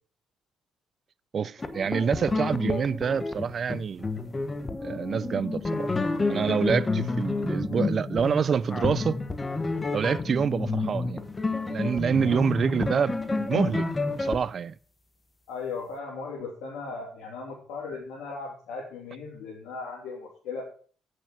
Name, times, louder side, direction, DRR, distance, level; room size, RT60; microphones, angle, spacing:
voice 1, 1.3-4.0 4.8-5.9 6.3-9.2 9.9-11.2 11.7-13.9 14.1-14.7, right 6 dB, 50° right, 0.4 m, -27 dB
sound 1, 1.6-14.4, left 3 dB, 25° left, 1.1 m, -29 dB
voice 2, 15.5-20.6, left 4 dB, 85° left, 2.9 m, -37 dB
8.4 x 6.5 x 5.7 m
cardioid pair, 90°, 0 cm